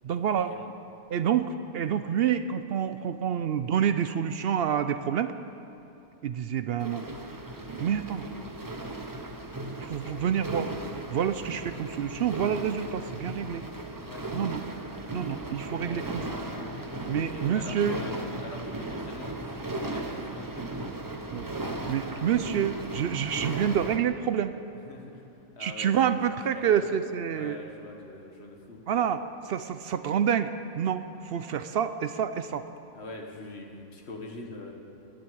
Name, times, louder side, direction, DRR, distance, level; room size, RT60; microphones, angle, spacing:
voice 1, 0.0-0.5 1.1-5.3 6.2-7.0 7.8-8.3 9.8-10.7 11.1-13.6 14.3-14.6 15.1-16.2 17.1-18.0 21.3-21.5 21.9-24.5 25.6-27.6 28.9-32.6, right 8 dB, 70° right, 10 dB, 0.5 m, -28 dB
sound 1, 6.8-24.0, right 2 dB, 15° right, 0.8 m, -37 dB
voice 2, 15.7-16.1 17.1-20.5 24.9-25.3 25.5-27.0 27.3-28.8 32.9-34.7, left 2 dB, 50° left, 2 dB, 1.8 m, -43 dB
18.5 x 7.8 x 8.6 m, 2.8 s
omnidirectional pair, 1.5 m